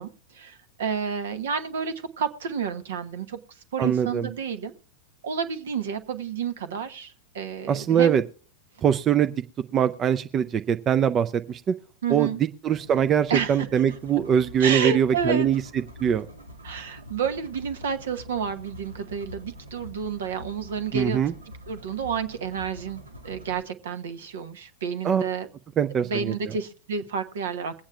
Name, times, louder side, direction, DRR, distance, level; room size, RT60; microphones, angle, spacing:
voice 1, 0.0-3.4 3.7-4.7 5.2-8.2 12.0-12.4 13.3-13.7 14.6-15.5 16.6-21.2 21.7-25.5 26.0-27.9, right 6 dB, 60° right, 10 dB, 1.1 m, -30 dB
voice 2, 3.8-4.3 7.7-8.2 8.8-9.3 9.7-11.7 12.1-12.3 12.6-15.6 16.0-16.3 20.9-21.3 25.0-25.2 25.8-26.3, right 8 dB, 25° right, 9 dB, 0.5 m, -22 dB
sound 1, 12.7-23.6, left 1 dB, 85° right, 2.2 m, -45 dB
22.5 x 8.7 x 2.3 m, 0.43 s
figure-of-eight pair, 90°, 0 cm